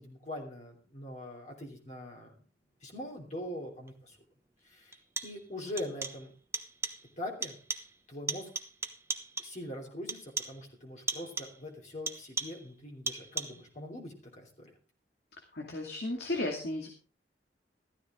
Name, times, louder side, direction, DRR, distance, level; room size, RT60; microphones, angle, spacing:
voice 1, 0.0-2.3 2.8-4.2 4.6-6.3 7.2-7.5 8.1-8.5 9.4-14.7, left 1 dB, 45° left, -1 dB, 3.3 m, -42 dB
sound 1, 3.9-4.0 4.9-5.5 5.8-6.3 6.5-7.1 7.4-8.0 8.3-9.6 10.1-10.7 11.1-11.6 12.1-12.7 13.1-13.7, right 3 dB, 15° right, 1.1 m, -38 dB
voice 2, 15.5-16.9, left 1 dB, 65° left, 1 dB, 2.4 m, -34 dB
14.5 x 13.0 x 3.7 m, 0.37 s
head